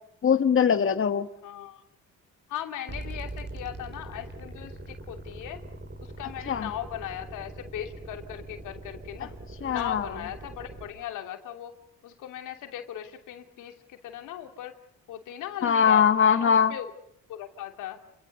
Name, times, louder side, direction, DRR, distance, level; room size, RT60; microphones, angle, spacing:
voice 1, 0.2-1.3 6.5-6.7 9.6-10.0 15.6-16.7, left 7 dB, 45° left, 9 dB, 1.4 m, -21 dB
voice 2, 1.4-1.8 2.5-5.6 6.0-9.3 9.6-11.7 12.0-14.7 15.1-16.9 17.3-18.0, left 11 dB, 90° left, 6 dB, 3.0 m, -38 dB
sound 1, 2.9-10.9, right 2 dB, 35° right, 6.2 m, -41 dB
29.5 x 24.0 x 6.8 m, 0.71 s
cardioid pair, 90°, 30 cm